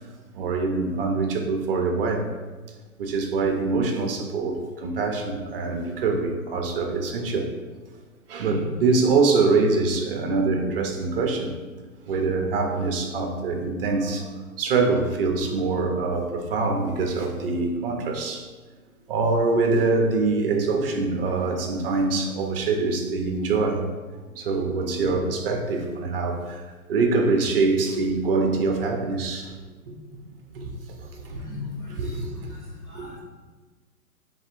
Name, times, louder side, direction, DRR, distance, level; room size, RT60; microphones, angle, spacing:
voice 1, 0.3-2.3 3.0-7.5 8.3-11.5 12.1-14.3 14.6-18.5 19.1-23.8 24.3-26.6 26.9-29.5 30.1-30.2 30.5-30.7 31.2-31.4 31.9-32.5 32.9-33.2, right 3 dB, 40° right, 3 dB, 0.7 m, -24 dB
voice 2, 31.4-32.2 32.9-33.2, left 4 dB, 10° left, -7 dB, 0.8 m, -37 dB
3.3 x 3.2 x 4.4 m, 1.3 s
hypercardioid pair, 140°, 44 cm